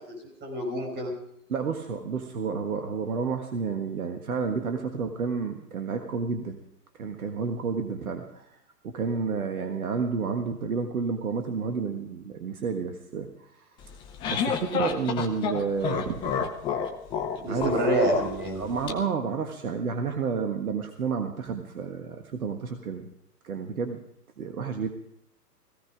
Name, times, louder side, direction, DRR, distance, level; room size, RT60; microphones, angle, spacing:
voice 1, 0.1-1.1 17.4-18.6, right 1 dB, 20° right, 2 dB, 5.2 m, -27 dB
voice 2, 1.5-6.6 7.0-8.5 8.8-13.3 14.3-16.4 17.5-17.9 18.6-23.1 23.4-24.0 24.4-24.9, right 5 dB, 60° right, 5 dB, 1.6 m, -30 dB
sound 1, 13.8-18.9, left 7 dB, 10° left, 0.6 m, -30 dB
17.5 x 16.0 x 4.9 m, 0.75 s
figure-of-eight pair, 115°, 48 cm